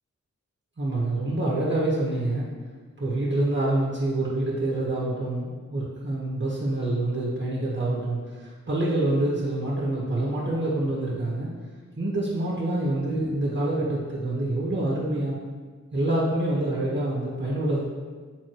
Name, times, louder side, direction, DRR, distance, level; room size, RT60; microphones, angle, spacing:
voice 1, 0.8-2.5 3.0-11.5 12.0-15.3 15.9-17.8, right 1 dB, 40° right, -7 dB, 1.5 m, -26 dB
9.1 x 4.0 x 3.2 m, 1.4 s
wide cardioid pair, 75°, 29 cm